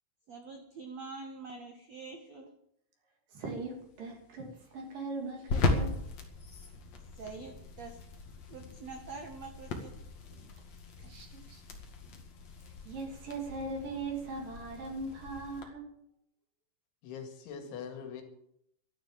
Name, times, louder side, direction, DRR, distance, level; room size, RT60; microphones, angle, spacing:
voice 1, 0.3-2.5 6.4-6.7 7.1-8.0 8.5-9.9, right 4 dB, 70° right, 4 dB, 1.5 m, -45 dB
voice 2, 3.3-6.0 11.0-11.6 12.9-16.0 17.6-17.8, right 3 dB, 50° right, 1 dB, 4.0 m, -40 dB
sound 1, 3.4-15.6, left 3 dB, 45° left, 2.5 m, -38 dB
voice 3, 17.0-18.2, left 7 dB, 75° left, 5 dB, 4.4 m, -42 dB
13.5 x 12.0 x 7.5 m, 0.74 s
omnidirectional pair, 5.5 m